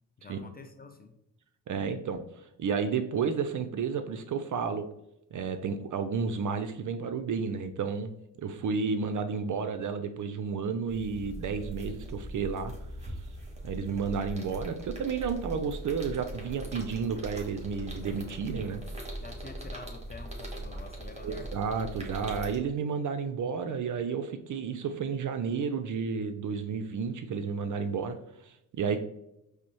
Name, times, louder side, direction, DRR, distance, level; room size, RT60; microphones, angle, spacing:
voice 1, 0.2-1.2 13.3-13.4 19.1-21.6, left 3 dB, 20° left, 5 dB, 0.4 m, -47 dB
voice 2, 1.7-4.9 5.3-8.1 8.4-12.7 13.0-13.1 13.6-18.8 21.2-29.0, right 5 dB, 40° right, 8 dB, 0.4 m, -32 dB
sound 1, 10.9-22.6, right 1 dB, 15° right, 1.4 m, -40 dB
5.0 x 2.1 x 2.9 m, 0.84 s
hypercardioid pair, 45°, 50 cm